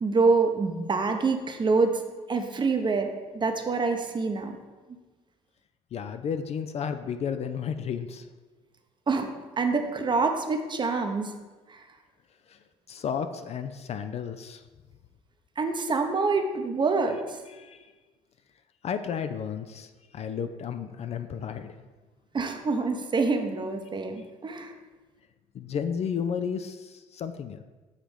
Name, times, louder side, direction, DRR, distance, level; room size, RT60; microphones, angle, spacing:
voice 1, 0.0-2.0 2.3-4.6 9.1-9.3 9.6-11.3 11.7-11.8 15.6-17.4 22.3-24.7, right 4 dB, 30° right, 5 dB, 0.8 m, -26 dB
voice 2, 5.9-8.3 12.5-12.6 12.9-14.6 17.5-17.9 18.8-21.7 25.5-27.6, left 7 dB, 40° left, 9 dB, 0.4 m, -33 dB
7.3 x 2.9 x 4.9 m, 1.3 s
hypercardioid pair, 65°, 16 cm